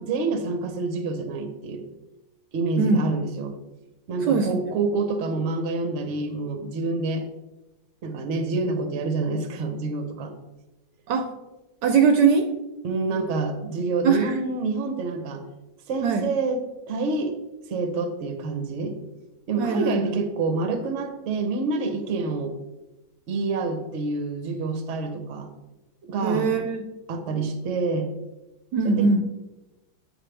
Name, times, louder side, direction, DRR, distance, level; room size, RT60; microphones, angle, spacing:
voice 1, 0.0-1.8 2.5-3.6 4.1-7.3 8.0-10.3 12.8-15.4 15.9-17.3 17.7-19.0 19.5-22.5 23.3-25.5 26.0-26.5 27.1-28.1 28.8-29.2, right 3 dB, 55° right, 7 dB, 0.9 m, -27 dB
voice 2, 2.8-3.1 4.3-4.5 11.1-11.3 11.8-12.5 14.0-14.3 16.0-16.2 19.6-20.1 26.2-26.8 28.7-29.2, right 5 dB, 75° right, 6 dB, 1.1 m, -21 dB
8.1 x 4.9 x 3.3 m, 1.0 s
omnidirectional pair, 2.1 m